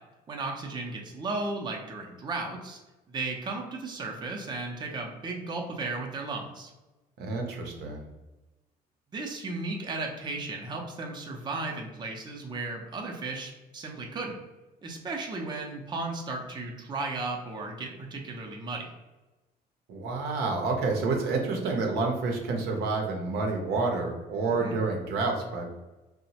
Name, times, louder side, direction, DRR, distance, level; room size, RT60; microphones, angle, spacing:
voice 1, 0.3-2.8 3.1-6.7 9.1-14.4 14.8-18.9 24.5-24.8, right 3 dB, 25° right, 0 dB, 0.5 m, -35 dB
voice 2, 7.2-8.0 19.9-25.7, right 3 dB, 80° right, 1 dB, 0.6 m, -29 dB
2.9 x 2.1 x 2.8 m, 1.1 s
cardioid pair, 110°, 17 cm